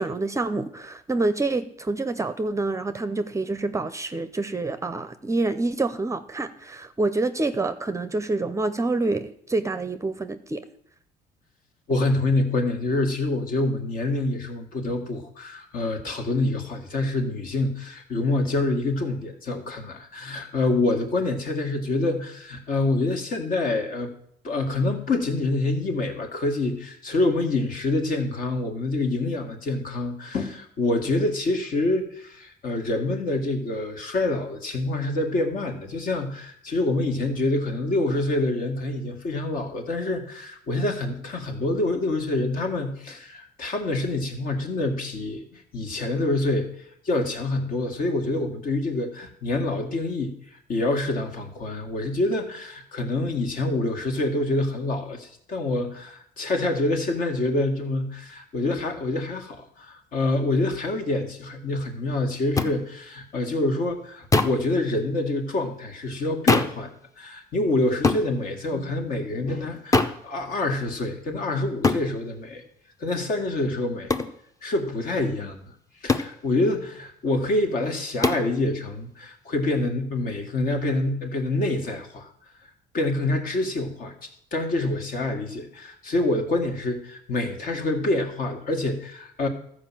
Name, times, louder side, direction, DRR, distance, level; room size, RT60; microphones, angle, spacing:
voice 1, 0.0-10.6, right 2 dB, 15° right, 11 dB, 0.6 m, -27 dB
voice 2, 11.9-24.1 24.4-45.4 45.7-50.3 50.7-66.9 67.2-72.6 73.0-74.1 74.6-75.6 76.0-82.3 82.9-84.1 84.5-89.5, left 2 dB, 55° left, 4 dB, 1.9 m, -26 dB
sound 1, 62.6-62.7 64.3-64.7 66.5-66.8 68.0-68.3 69.9-70.2 71.8-72.1 74.1-74.3 76.1-76.4 78.2-78.5, left 3 dB, 20° left, 0.7 m, -21 dB
13.0 x 5.0 x 7.5 m, 0.68 s
cardioid pair, 110°, 17 cm